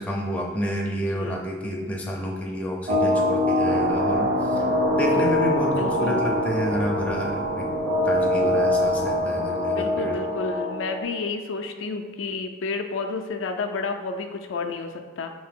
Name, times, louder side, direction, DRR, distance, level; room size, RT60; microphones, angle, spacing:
voice 1, 0.0-4.5 4.9-7.7 8.0-10.2, equal, 5° left, -2 dB, 0.4 m, -29 dB
voice 2, 1.1-1.4 5.8-6.2 9.7-15.3, left 4 dB, 65° left, 5 dB, 0.4 m, -31 dB
sound 1, 2.9-11.0, left 1 dB, 35° right, 0.6 m, -24 dB
sound 2, 3.6-9.4, right 2 dB, 85° right, 0.9 m, -33 dB
5.5 x 2.8 x 3.5 m, 1.5 s
head